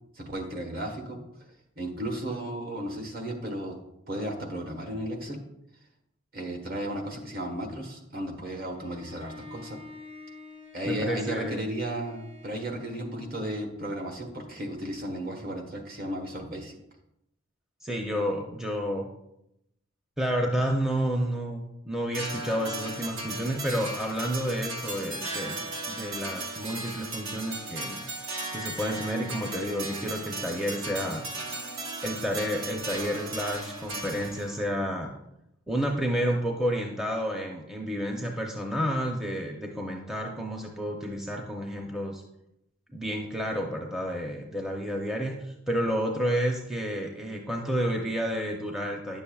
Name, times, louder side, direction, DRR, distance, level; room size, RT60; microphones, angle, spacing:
voice 1, 0.2-1.2 1.8-3.8 4.1-5.4 6.3-9.8 10.7-16.8, right 1 dB, 45° right, 2 dB, 1.2 m, -34 dB
Bowed string instrument, 8.7-13.2, left 3 dB, 25° right, 0.8 m, -48 dB
voice 2, 10.8-11.7 17.8-19.1 20.2-28.0 28.5-31.2 32.0-35.1 35.7-42.2 42.9-49.2, equal, ahead, 0 dB, 0.5 m, -30 dB
sound 1, 22.1-34.6, right 2 dB, 65° right, 0.9 m, -36 dB
10.0 x 6.9 x 2.3 m, 0.83 s
head